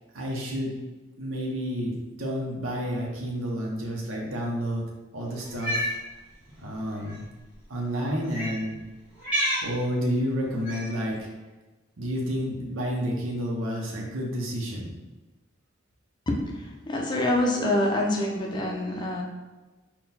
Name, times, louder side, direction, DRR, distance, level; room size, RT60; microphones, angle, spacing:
voice 1, 0.1-0.7 1.2-4.8 5.1-5.9 6.6-7.2 7.7-8.7 9.6-11.3 12.0-14.9, equal, 85° right, -2 dB, 0.7 m, -30 dB
Cat, 5.5-5.9 7.0-7.2 8.3-8.6 9.2-9.7 10.6-11.0, equal, 10° right, 1.4 m, -28 dB
voice 2, 16.3-19.2, left 1 dB, 20° left, -1 dB, 0.5 m, -26 dB
3.8 x 2.2 x 4.1 m, 1.2 s
head